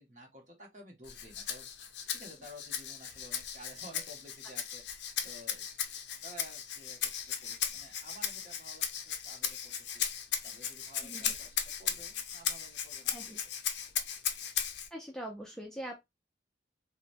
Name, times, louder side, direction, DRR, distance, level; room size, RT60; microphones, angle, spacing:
voice 1, 0.0-10.0 10.4-13.4, equal, 40° right, 0.9 m, -53 dB
Rattle (instrument), 1.0-14.9, left 8 dB, 70° left, 0.5 m, -37 dB
voice 2, 11.0-11.3 13.1-13.4 14.9-16.0, right 1 dB, 5° left, 0.4 m, -42 dB
2.9 x 2.1 x 2.5 m
head